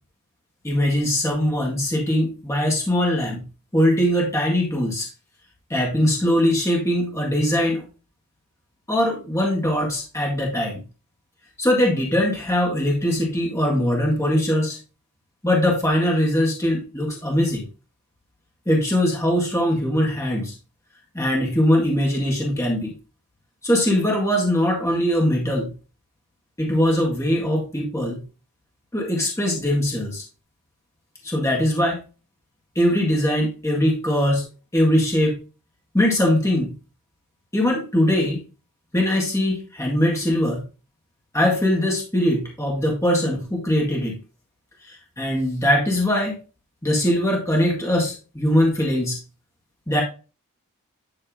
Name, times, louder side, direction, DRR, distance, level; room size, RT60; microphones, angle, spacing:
voice 1, 0.6-3.4 3.7-5.1 5.7-7.8 8.9-10.8 11.6-14.8 15.4-17.7 18.6-20.5 21.1-22.9 23.6-25.7 26.6-28.2 28.9-30.2 31.2-32.0 32.7-34.5 34.7-35.4 35.9-36.7 37.5-38.4 38.9-40.6 41.3-44.2 44.8-46.4 46.8-49.2 49.9-50.0, left 1 dB, 15° left, -1 dB, 1.8 m, -21 dB
10.0 x 3.6 x 3.7 m, 0.32 s
head